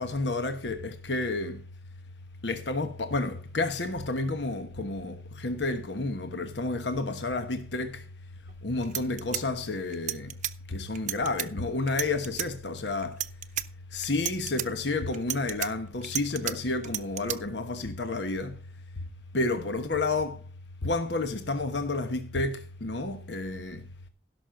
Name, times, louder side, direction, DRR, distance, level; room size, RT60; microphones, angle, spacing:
voice 1, 0.0-1.6 2.4-8.1 8.6-10.3 10.7-13.2 13.9-18.6 19.3-20.4 20.8-23.9, left 2 dB, 75° left, 1.2 m, -30 dB
sound 1, 8.5-8.6 8.8-10.5 11.0-11.5 11.9-12.5 13.0-13.7 14.0-14.7 15.1-16.5 16.8-17.4, right 13 dB, 40° right, 0.7 m, -32 dB
16.5 x 6.3 x 5.1 m
head